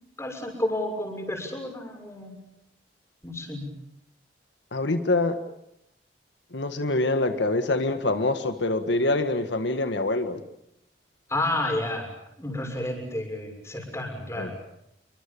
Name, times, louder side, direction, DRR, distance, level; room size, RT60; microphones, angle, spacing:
voice 1, 0.2-2.3 3.2-3.7 11.3-12.1 12.4-14.5, left 1 dB, 15° left, 3 dB, 6.7 m, -30 dB
voice 2, 4.7-5.4 6.5-10.4 14.4-14.5, left 2 dB, 75° left, 8 dB, 1.7 m, -25 dB
28.0 x 24.5 x 7.1 m, 0.78 s
head